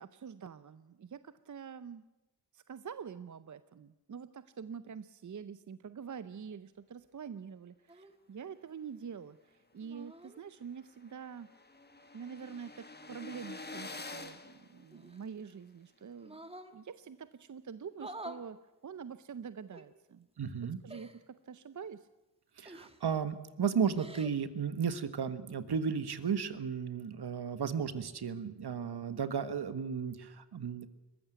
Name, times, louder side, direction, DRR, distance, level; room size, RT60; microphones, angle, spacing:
voice 1, 0.0-2.0 2.5-11.5 12.1-16.4 16.7-18.6 18.8-20.3 20.8-22.1, right 7 dB, 45° right, 13 dB, 0.7 m, -46 dB
sound 1, 7.9-8.1 9.8-10.4 11.7-12.8 14.9-15.6 16.2-16.7 17.9-18.4 19.7-19.8 20.9-21.2 22.6-23.1 23.8-24.4, right 1 dB, 15° right, 1.5 m, -49 dB
sound 2, 9.9-10.0 10.4-10.5 10.6-15.5, left 3 dB, 25° left, 1.5 m, -48 dB
voice 2, 20.4-20.8 22.6-30.9, right 6 dB, 65° right, 12 dB, 1.5 m, -34 dB
21.5 x 15.0 x 9.3 m, 1.0 s
wide cardioid pair, 85°, 42 cm